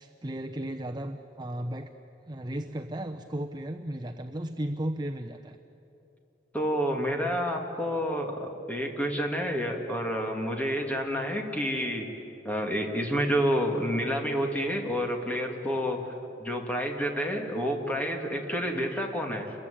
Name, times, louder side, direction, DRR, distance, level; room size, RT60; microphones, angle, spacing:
voice 1, 0.0-1.9 2.3-5.6, right 1 dB, 25° right, 4 dB, 0.8 m, -35 dB
voice 2, 6.5-12.1 12.4-16.1 16.4-19.5, equal, 10° left, 2 dB, 2.8 m, -29 dB
30.0 x 22.0 x 8.7 m, 2.9 s
head